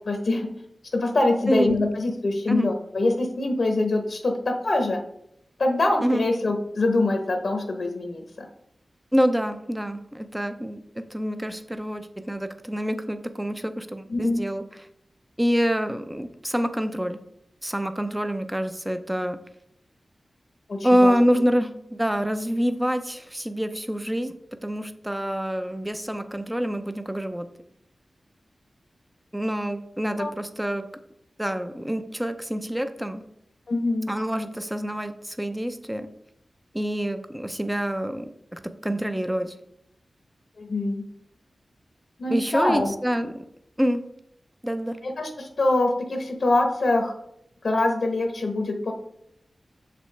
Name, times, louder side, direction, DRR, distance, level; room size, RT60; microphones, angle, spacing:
voice 1, 0.1-0.5 0.9-5.0 5.6-8.2 14.1-14.4 20.7-21.2 30.2-30.3 33.7-34.2 40.6-41.0 42.2-42.9 45.0-47.1 47.6-48.9, left 2 dB, 70° left, 3 dB, 0.9 m, -24 dB
voice 2, 1.5-1.9 2.5-2.7 6.0-6.3 9.1-14.6 15.4-17.2 17.6-19.4 20.8-24.3 24.6-27.5 29.3-30.9 31.4-33.2 34.1-36.1 36.7-39.5 42.3-43.5 43.8-44.0 44.6-45.0, equal, 10° right, 9 dB, 0.5 m, -26 dB
6.4 x 5.2 x 3.2 m, 0.76 s
cardioid pair, 45°, 0 cm